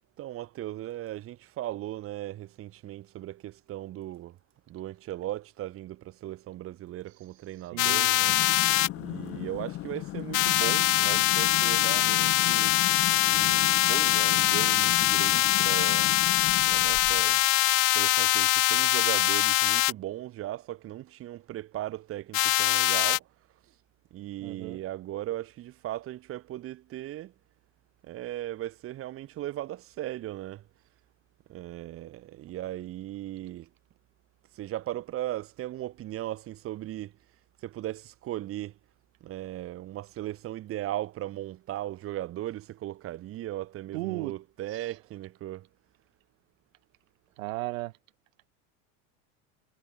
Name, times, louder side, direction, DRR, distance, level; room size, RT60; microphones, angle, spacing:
voice 1, 0.2-4.4 4.7-8.4 9.0-12.7 13.2-16.2 16.7-17.4 17.9-23.3 24.1-27.3 28.0-30.6 31.5-33.7 34.5-37.1 37.6-38.8 39.2-45.7, right 14 dB, 35° right, 7.3 m, -37 dB
voice 2, 7.7-8.4 24.4-24.8 43.9-44.3 47.4-47.9, right 20 dB, 80° right, 5.5 m, -35 dB
sound 1, 7.8-8.9 10.3-19.9 22.3-23.2, left 21 dB, 80° left, 2.3 m, -23 dB
sound 2, 8.2-17.4, left 15 dB, 35° left, 3.1 m, -37 dB
cardioid pair, 170°, 39 cm